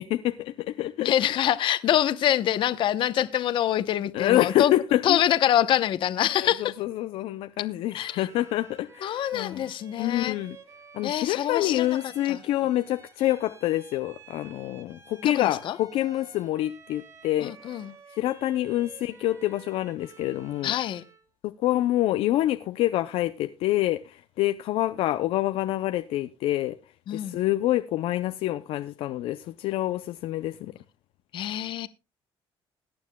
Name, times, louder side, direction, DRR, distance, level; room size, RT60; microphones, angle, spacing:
voice 1, 0.0-1.1 4.1-5.2 6.4-9.7 10.0-10.6 10.9-17.8 18.1-20.7 21.6-26.8 27.1-30.7, left 14 dB, 70° left, 0.5 m, -27 dB
voice 2, 1.0-4.7 5.0-6.7 7.9-8.3 9.0-10.4 11.0-12.4 15.2-15.8 17.4-17.9 20.6-21.0 27.1-27.4 31.3-31.9, left 11 dB, 55° left, 0.8 m, -25 dB
Bowed string instrument, 7.9-21.3, right 5 dB, 30° right, 1.7 m, -51 dB
21.0 x 9.5 x 2.2 m
cardioid pair, 140°, 10 cm